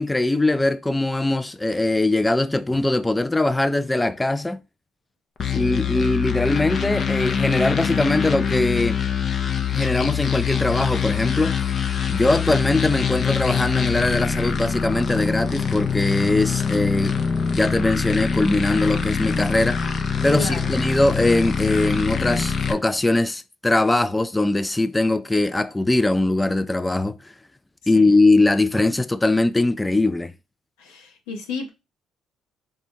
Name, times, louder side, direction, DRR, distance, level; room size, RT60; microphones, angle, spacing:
voice 1, 0.0-4.6 5.5-9.0 9.7-11.6 12.1-17.1 17.5-19.8 20.2-27.3 27.9-30.3, left 2 dB, 15° left, 0.3 m, -21 dB
sound 1, 5.4-22.7, left 6 dB, 50° left, 0.6 m, -24 dB
voice 2, 5.5-6.1 20.4-20.7 27.9-28.1 30.8-31.7, left 4 dB, 90° left, 0.9 m, -33 dB
4.0 x 2.2 x 4.6 m
supercardioid pair, 60°, 0 cm